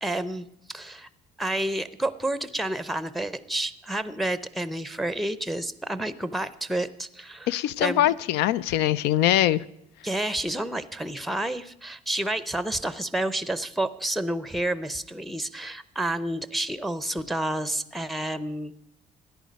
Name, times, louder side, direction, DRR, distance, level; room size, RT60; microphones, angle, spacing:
voice 1, 0.0-1.1 1.4-7.5 7.8-8.1 10.0-18.7, right 1 dB, ahead, 14 dB, 0.5 m, -30 dB
voice 2, 7.5-9.6, left 12 dB, 90° left, 18 dB, 0.4 m, -22 dB
13.5 x 10.5 x 5.2 m, 0.77 s
cardioid pair, 110°, 17 cm